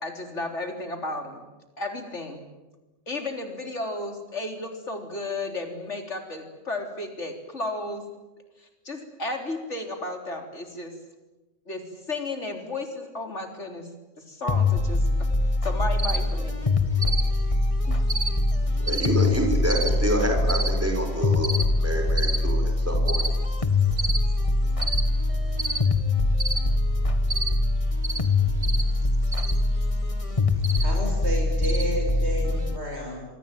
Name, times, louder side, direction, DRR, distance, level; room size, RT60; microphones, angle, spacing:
voice 1, 0.0-1.4 1.8-2.4 3.1-8.0 8.6-10.9 11.7-13.9 14.3-15.3 15.6-16.6 17.0-17.2 17.9-18.1, left 2 dB, 85° left, 4 dB, 4.1 m, -33 dB
sound 1, 14.5-32.8, left 2 dB, 30° left, 1.6 m, -24 dB
Cricket, 16.0-32.8, right 2 dB, 50° right, 2.7 m, -34 dB
voice 2, 18.8-23.2, right 1 dB, 10° right, 2 dB, 6.5 m, -28 dB
voice 3, 30.8-33.3, equal, 70° right, 1 dB, 7.5 m, -31 dB
27.0 x 23.5 x 9.2 m, 1.1 s
omnidirectional pair, 1.2 m